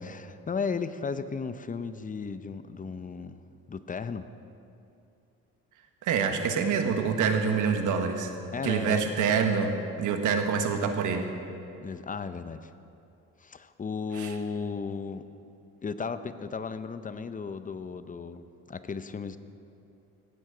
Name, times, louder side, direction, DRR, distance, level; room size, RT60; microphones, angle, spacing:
voice 1, 0.0-3.4 3.7-4.3 8.5-9.0 11.8-12.7 13.4-15.2 15.8-19.4, left 5 dB, 25° left, 11 dB, 0.6 m, -35 dB
voice 2, 6.0-8.3 8.6-11.3 14.1-14.3, right 6 dB, 85° right, 6 dB, 1.2 m, -26 dB
15.5 x 9.2 x 4.9 m, 2.7 s
cardioid pair, 90°, 30 cm